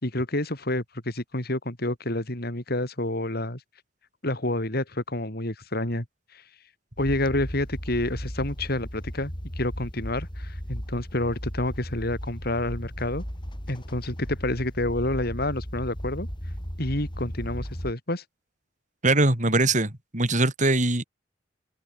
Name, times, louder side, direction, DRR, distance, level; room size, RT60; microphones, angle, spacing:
voice 1, 0.0-3.6 4.2-6.1 6.3-6.4 7.0-13.2 13.7-16.3 16.8-18.2, left 1 dB, 55° left, 3.8 m, -29 dB
sound 1, 7.0-17.9, equal, 25° left, 5.7 m, -36 dB
voice 2, 19.0-21.1, right 2 dB, 40° right, 3.8 m, -22 dB
head